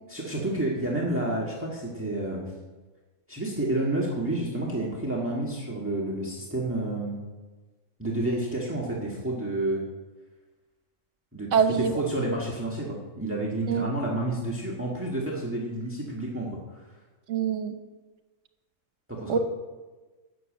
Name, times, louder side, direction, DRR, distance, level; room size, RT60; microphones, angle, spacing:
voice 1, 0.1-2.5 3.3-7.2 8.0-9.8 11.3-16.9 19.1-19.4, right 1 dB, 10° right, -3 dB, 1.6 m, -30 dB
voice 2, 11.5-11.9 13.7-13.9 17.3-17.7 19.3-19.4, right 6 dB, 70° right, 8 dB, 1.3 m, -24 dB
12.5 x 6.4 x 7.7 m, 1.3 s
omnidirectional pair, 1.3 m